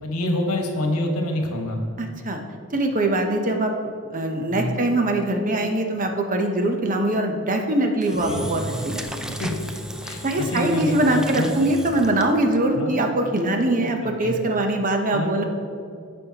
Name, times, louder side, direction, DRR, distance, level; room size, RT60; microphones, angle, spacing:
voice 1, 0.0-1.8 4.5-4.7 8.3-8.8 9.3-9.5 10.0-11.5 12.7-13.0 14.0-14.3 15.1-15.3, left 1 dB, 75° left, 2 dB, 1.3 m, -27 dB
voice 2, 2.0-2.4 2.7-3.7 4.1-9.3 10.2-15.4, right 1 dB, 35° right, 4 dB, 0.8 m, -22 dB
Engine / Drill, 8.0-12.5, equal, 5° right, 0.3 m, -34 dB
15.5 x 5.4 x 2.9 m, 2.3 s
head